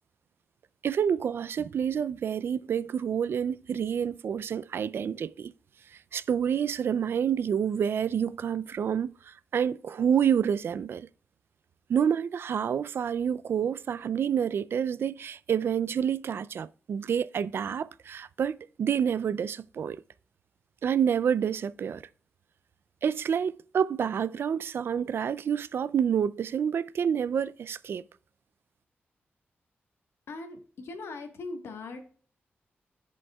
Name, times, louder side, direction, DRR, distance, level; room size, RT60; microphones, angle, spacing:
voice 1, 0.8-5.5 5.9-11.1 11.9-20.0 20.8-22.0 23.0-28.0, right 8 dB, 65° right, 0.3 m, -28 dB
voice 2, 30.3-32.1, left 3 dB, 85° left, 1.3 m, -40 dB
13.0 x 5.3 x 2.3 m
wide cardioid pair, 130°, 4 cm